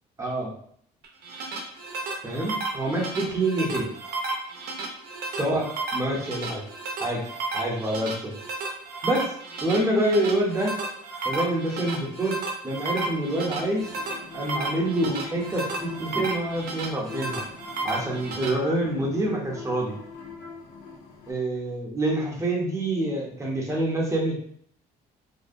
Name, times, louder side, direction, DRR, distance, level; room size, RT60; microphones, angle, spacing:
voice 1, 0.2-0.5 2.2-3.9 5.3-6.6 7.0-7.2 7.5-8.3 9.0-9.3 9.6-10.8 11.2-13.9 14.3-17.4 17.8-19.9 21.3-24.4, right 1 dB, 15° right, -2 dB, 0.6 m, -26 dB
sound 1, 1.0-18.5, right 3 dB, 70° right, 0.5 m, -33 dB
sound 2, 13.4-21.3, left 5 dB, 75° left, 0.7 m, -43 dB
2.5 x 2.1 x 2.4 m, 0.63 s
cardioid pair, 110°, 17 cm